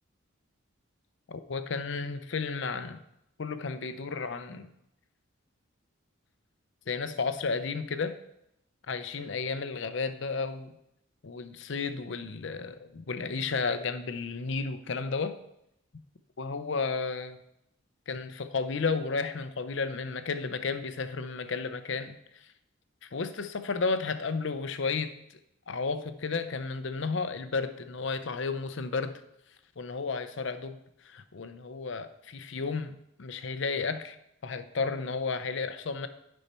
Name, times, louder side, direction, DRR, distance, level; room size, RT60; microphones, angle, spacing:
voice 1, 1.3-3.0 3.4-4.7 6.9-8.2 8.9-10.7 11.2-15.4 16.4-17.4 18.1-22.5 23.0-25.4 25.7-29.2 29.8-34.2 34.4-36.1, left 4 dB, 60° left, 10 dB, 0.6 m, -33 dB
10.0 x 5.5 x 4.3 m, 0.79 s
head